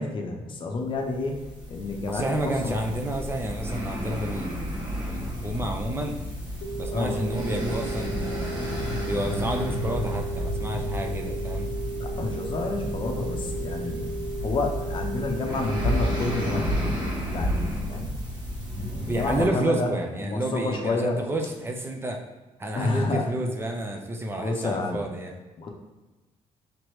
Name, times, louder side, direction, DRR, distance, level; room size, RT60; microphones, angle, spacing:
voice 1, 0.0-1.4 1.7-2.9 6.9-7.2 12.0-14.1 14.4-18.1 19.1-19.9 20.2-21.2 22.8-23.3 24.4-25.1 25.6-25.7, left 3 dB, 40° left, 2 dB, 0.7 m, -29 dB
sound 1, 0.9-19.4, equal, 35° right, 1.4 m, -31 dB
voice 2, 2.1-4.7 5.1-6.2 6.8-8.6 9.0-11.7 19.0-22.2 22.6-25.4, right 1 dB, 20° right, 3 dB, 0.6 m, -30 dB
sound 2, 6.6-16.6, right 3 dB, 85° left, 0.5 m, -36 dB
5.1 x 3.1 x 3.1 m, 1.2 s
cardioid pair, 115°, 12 cm